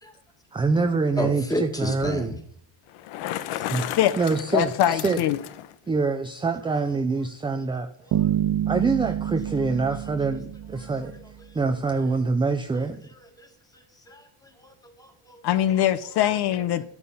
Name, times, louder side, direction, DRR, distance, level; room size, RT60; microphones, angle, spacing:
voice 1, 0.5-2.3 3.7-3.8 4.2-5.2 5.9-7.9 8.7-11.2 11.5-13.1, right 4 dB, 10° right, 0.5 m, -25 dB
voice 2, 1.2-2.4 3.6-3.7 8.1-8.3 10.8-10.9 13.1-13.5 14.1-15.4, left 1 dB, 5° left, 1.8 m, -32 dB
Bicycle, 2.9-5.7, left 13 dB, 85° left, 1.1 m, -34 dB
voice 3, 4.5-5.4 15.4-16.8, left 11 dB, 55° left, 0.8 m, -22 dB
Bass guitar, 8.1-11.2, right 10 dB, 70° right, 1.5 m, -27 dB
13.5 x 12.5 x 5.5 m
cardioid pair, 170°, 49 cm